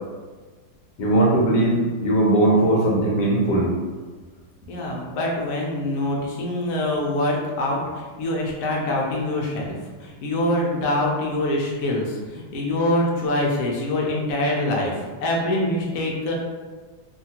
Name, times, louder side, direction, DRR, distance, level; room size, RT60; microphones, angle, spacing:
voice 1, 1.0-3.7, right 1 dB, 65° left, -4 dB, 1.3 m, -19 dB
voice 2, 4.7-16.3, left 1 dB, 85° left, -2 dB, 0.8 m, -24 dB
3.3 x 2.2 x 2.7 m, 1.4 s
omnidirectional pair, 2.2 m